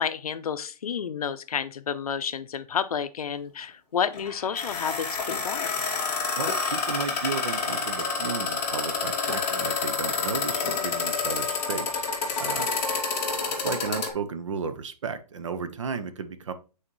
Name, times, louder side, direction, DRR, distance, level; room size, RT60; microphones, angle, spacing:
voice 1, 0.0-5.7, left 7 dB, 65° left, 0.6 m, -30 dB
sound 1, 4.1-14.1, left 4 dB, 20° left, 1.4 m, -28 dB
voice 2, 6.4-12.1 12.4-12.7 13.3-16.5, right 5 dB, 50° right, 0.7 m, -34 dB
7.5 x 4.2 x 3.0 m
hypercardioid pair, 175°, 20 cm